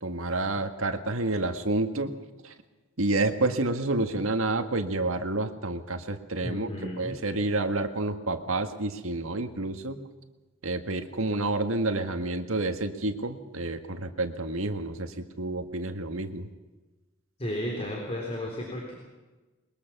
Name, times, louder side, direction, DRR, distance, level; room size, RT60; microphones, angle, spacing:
voice 1, 0.0-2.1 2.4-2.5 3.0-6.7 7.0-10.0 10.6-16.5, right 2 dB, 80° right, 7 dB, 1.8 m, -29 dB
voice 2, 6.4-7.2 17.4-18.9, left 1 dB, 30° left, -1 dB, 3.6 m, -33 dB
22.0 x 21.5 x 6.1 m, 1.2 s
head